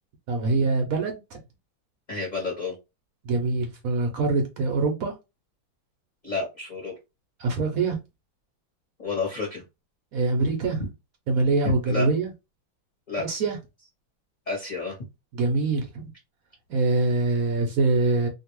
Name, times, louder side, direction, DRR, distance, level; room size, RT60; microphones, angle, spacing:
voice 1, 0.3-1.4 3.2-5.1 7.4-8.0 10.1-10.8 11.3-12.3 13.2-13.6 15.3-16.1 16.7-18.3, right 3 dB, 65° right, 0.9 m, -24 dB
voice 2, 2.1-2.7 6.2-6.9 9.0-9.6 11.6-12.1 13.1-13.3 14.5-15.0, left 3 dB, 30° left, 1.0 m, -30 dB
2.9 x 2.6 x 2.9 m
omnidirectional pair, 2.1 m